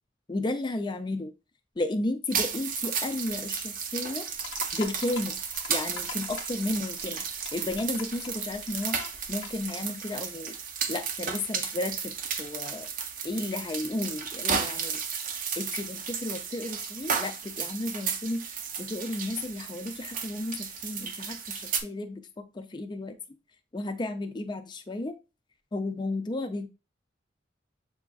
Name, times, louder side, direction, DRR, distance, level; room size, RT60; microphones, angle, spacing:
voice 1, 0.3-1.3 1.8-4.3 4.7-5.3 5.7-7.2 7.5-9.0 9.3-10.6 10.9-12.9 13.2-15.0 15.6-18.4 18.8-23.2 23.7-25.2 25.7-26.7, left 2 dB, 25° left, 7 dB, 0.4 m, -33 dB
sound 1, 2.3-21.8, right 6 dB, 45° right, 0.5 m, -34 dB
sound 2, 4.3-9.7, left 6 dB, 90° left, 0.6 m, -44 dB
7.0 x 2.5 x 2.3 m, 0.30 s
head